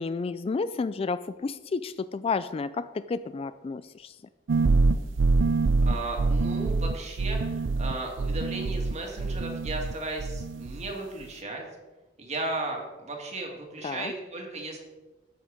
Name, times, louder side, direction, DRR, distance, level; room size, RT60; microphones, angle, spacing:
voice 1, 0.0-4.1 13.8-14.1, left 4 dB, 30° left, 13 dB, 0.3 m, -31 dB
sound 1, 4.5-9.9 10.2-10.9, right 3 dB, 90° right, 0.5 m, -25 dB
voice 2, 5.8-11.6 12.2-14.8, right 2 dB, 35° right, 1 dB, 2.3 m, -35 dB
13.0 x 8.1 x 5.0 m, 1.2 s
head